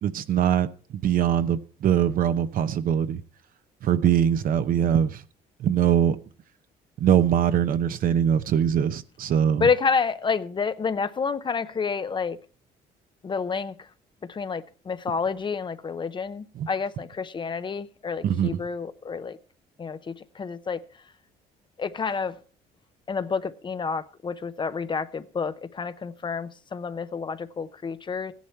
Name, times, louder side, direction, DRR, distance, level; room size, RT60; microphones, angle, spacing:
voice 1, 0.0-0.7 0.9-3.2 3.8-5.2 5.6-6.2 7.0-9.7 16.5-16.7 18.2-18.6, right 9 dB, 55° right, 0.8 m, -22 dB
voice 2, 9.6-12.4 13.2-13.7 14.3-19.4 19.8-20.8 21.8-22.3 23.1-28.3, left 5 dB, 30° left, 0.7 m, -29 dB
15.0 x 10.5 x 4.4 m
cardioid pair, 110°, 17 cm